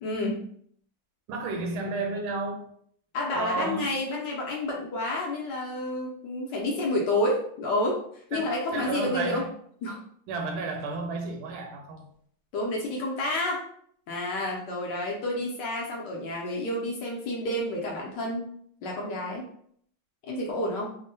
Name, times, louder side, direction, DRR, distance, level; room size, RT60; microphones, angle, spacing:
voice 1, 0.0-0.4 3.1-8.0 8.3-9.4 9.8-10.0 12.5-13.6 14.1-18.5 18.8-19.4 20.3-20.9, left 1 dB, 70° left, -2 dB, 1.1 m, -29 dB
voice 2, 1.3-2.7 3.3-4.0 8.3-9.5 10.3-12.1, right 3 dB, 90° right, 3 dB, 1.4 m, -32 dB
3.5 x 2.0 x 2.7 m, 0.63 s
omnidirectional pair, 2.2 m